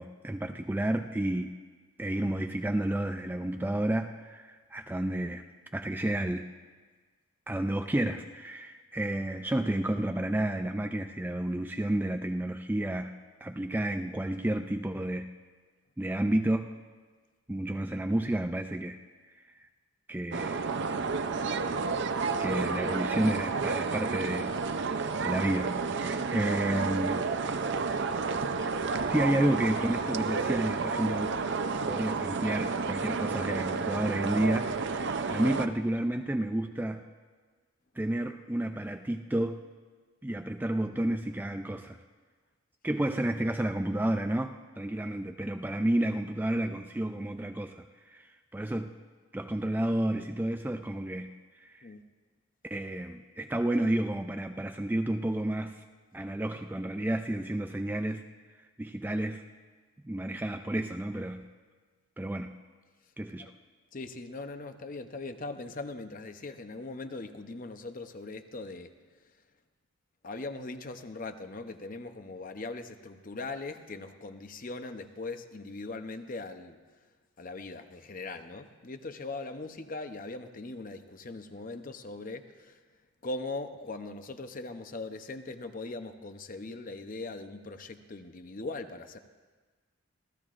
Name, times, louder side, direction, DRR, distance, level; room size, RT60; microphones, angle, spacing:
voice 1, 0.0-1.5 2.0-5.4 5.7-6.4 7.5-13.1 13.4-15.3 16.0-16.7 17.5-19.0 20.1-20.7 22.4-27.2 29.1-31.4 31.9-37.0 38.0-39.6 40.2-42.0 42.8-47.8 48.1-48.3 48.5-48.9 49.3-51.3 51.6-51.7 52.7-55.8 56.1-58.2 58.8-59.4 60.0-61.4 62.2-62.5 63.2-63.5, right 1 dB, 10° right, 6 dB, 0.3 m, -31 dB
sound 1, 20.3-35.7, right 4 dB, 55° right, 0.6 m, -31 dB
voice 2, 63.9-68.9 70.2-76.8 77.4-82.8 83.2-89.2, left 3 dB, 40° left, 8 dB, 0.7 m, -40 dB
26.5 x 16.0 x 2.5 m, 1.4 s
head